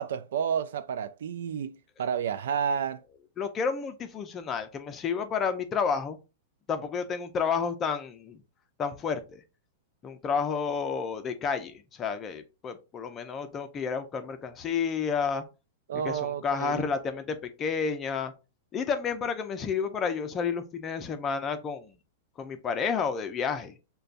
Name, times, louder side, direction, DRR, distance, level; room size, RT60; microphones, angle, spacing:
voice 1, 0.0-3.0 15.9-16.8, right 7 dB, 80° right, 0.4 m, -30 dB
voice 2, 3.4-6.2 6.7-8.4 8.8-9.4 10.0-15.4 16.0-18.3 18.7-22.0 22.4-23.7, left 6 dB, 20° left, 0.5 m, -30 dB
6.6 x 2.2 x 2.5 m
supercardioid pair, 155°, 0 cm